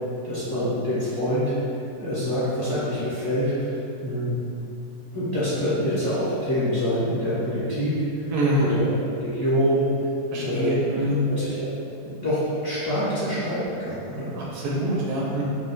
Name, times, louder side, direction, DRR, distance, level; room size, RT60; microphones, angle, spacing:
voice 1, 0.2-1.5 2.0-3.5 4.0-4.3 5.1-7.9 8.5-8.8 9.1-9.9 10.3-11.7 12.0-14.3, equal, 25° left, -14 dB, 1.1 m, -26 dB
voice 2, 8.3-8.7 10.3-11.2 14.4-15.4, right 1 dB, 80° right, -4 dB, 1.1 m, -25 dB
3.1 x 2.9 x 2.2 m, 2.6 s
omnidirectional pair, 1.7 m